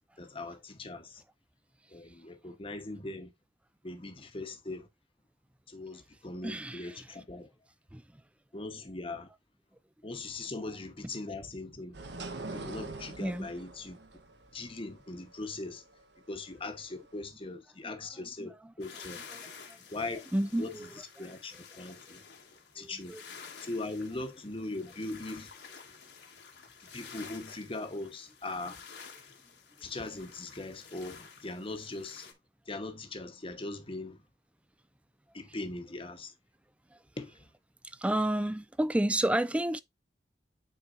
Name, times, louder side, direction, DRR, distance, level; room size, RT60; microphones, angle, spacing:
voice 1, 0.2-1.2 1.9-3.3 3.8-4.9 5.7-7.5 8.5-9.3 10.0-12.0 12.5-14.0 14.5-15.8 16.3-19.2 19.9-20.2 20.6-20.7 21.2-22.2 22.7-23.2 23.7-25.5 26.9-28.8 29.8-32.3 32.7-34.2 35.3-36.3 37.2-37.3, left 2 dB, 30° left, 1.0 m, -40 dB
voice 2, 6.4-7.2 7.9-8.0 13.2-13.5 18.1-18.7 19.3-19.8 20.3-20.9 21.2-21.4 22.8-23.2 36.9-37.0 37.8-39.8, right 1 dB, 5° right, 0.3 m, -31 dB
sound 1, 11.9-17.2, right 3 dB, 75° right, 1.0 m, -44 dB
sound 2, 18.8-32.3, left 6 dB, 70° left, 1.5 m, -51 dB
9.1 x 4.3 x 2.5 m
head